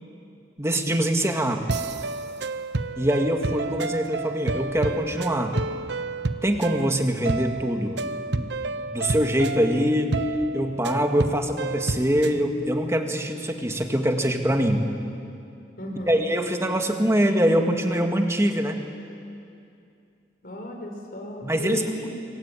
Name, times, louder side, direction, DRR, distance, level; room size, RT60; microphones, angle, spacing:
voice 1, 0.6-1.6 3.0-5.5 6.4-8.0 8.3-8.5 8.9-10.2 10.5-14.8 16.1-18.8 21.4-22.1, equal, 15° right, 4 dB, 2.1 m, -23 dB
sound 1, 1.7-12.4, right 3 dB, 80° right, 0.9 m, -30 dB
voice 2, 15.8-16.2 20.4-22.1, left 1 dB, 55° left, 2 dB, 5.4 m, -34 dB
26.5 x 23.5 x 9.1 m, 2.5 s
head